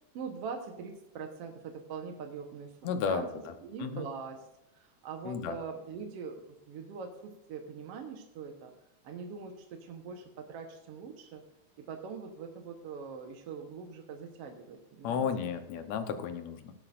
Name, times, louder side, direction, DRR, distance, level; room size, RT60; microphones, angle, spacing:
voice 1, 0.1-3.3 3.6-4.5 4.8-8.7 9.0-11.4 11.8-15.3, right 5 dB, 60° right, 3 dB, 1.9 m, -42 dB
voice 2, 2.8-3.3 3.8-4.1 5.3-5.5 15.0-16.7, left 6 dB, 70° left, 8 dB, 2.2 m, -33 dB
17.0 x 10.5 x 2.6 m, 0.85 s
omnidirectional pair, 3.5 m